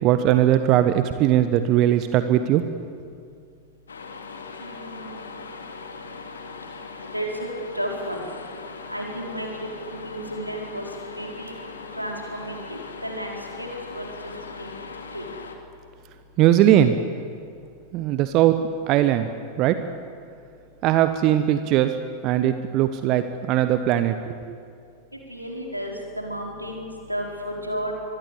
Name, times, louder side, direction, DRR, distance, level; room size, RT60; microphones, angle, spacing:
voice 1, 0.0-2.6 16.4-17.0 17.9-18.6 18.9-19.3 19.6-19.8 20.8-22.0 22.2-24.5, right 12 dB, 40° right, 10 dB, 1.1 m, -19 dB
sound 1, 3.9-15.6, left 4 dB, 70° left, 2.4 m, -39 dB
voice 2, 4.6-5.3 7.1-7.5 7.7-8.2 8.9-10.8 11.1-11.5 11.9-13.7 13.9-14.7 15.1-15.2 25.1-27.9, equal, 90° right, 0 dB, 4.5 m, -33 dB
24.5 x 21.0 x 8.4 m, 2.3 s
figure-of-eight pair, 90°, 0 cm